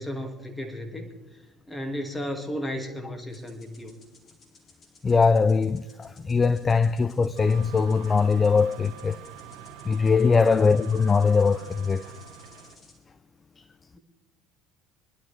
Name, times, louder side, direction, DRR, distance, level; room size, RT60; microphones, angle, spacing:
voice 1, 0.0-1.4 1.7-3.9 10.4-10.8 13.9-14.0, equal, 10° left, 2.5 m, -34 dB
sound 1, 3.3-13.0, left 3 dB, 40° left, 4.4 m, -56 dB
voice 2, 5.0-9.2 9.9-12.0, left 5 dB, 25° left, 0.4 m, -21 dB
sound 2, 7.3-12.7, right 9 dB, 65° right, 2.8 m, -45 dB
23.0 x 12.0 x 3.5 m
figure-of-eight pair, 65°, 0 cm